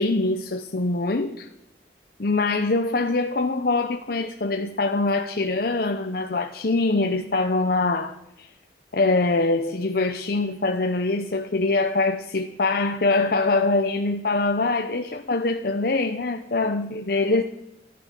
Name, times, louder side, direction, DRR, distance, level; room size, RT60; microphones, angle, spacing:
voice 1, 0.0-1.5 2.2-8.5 8.9-17.4, left 3 dB, 55° left, 0.7 m, -23 dB
14.5 x 11.5 x 7.5 m
head